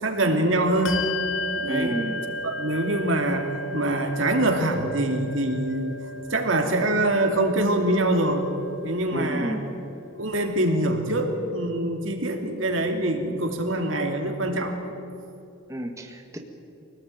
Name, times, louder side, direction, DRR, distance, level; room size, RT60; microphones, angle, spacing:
voice 1, 0.0-1.0 1.5-2.1 2.4-6.0 6.3-8.5 8.8-9.6 10.2-14.8, right 1 dB, 75° right, 4 dB, 2.9 m, -24 dB
Bell, 0.8-10.8, left 1 dB, 70° left, 1.6 m, -35 dB
voice 2, 1.7-2.2 9.1-9.6 15.7-16.4, right 1 dB, 15° right, 2 dB, 1.8 m, -30 dB
25.5 x 18.5 x 9.4 m, 2.9 s
head